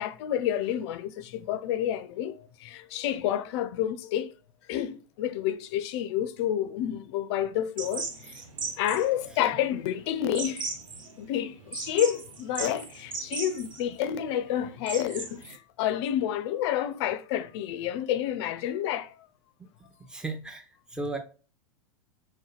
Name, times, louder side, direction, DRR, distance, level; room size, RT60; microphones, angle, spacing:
voice 1, 0.0-4.3 4.7-8.4 8.8-10.8 11.2-19.3, left 11 dB, 60° left, 0.4 m, -29 dB
sound 1, 7.8-15.6, right 4 dB, 90° right, 0.6 m, -38 dB
voice 2, 20.0-21.2, right 3 dB, 5° right, 0.6 m, -36 dB
2.7 x 2.2 x 2.3 m
hypercardioid pair, 95°, 16 cm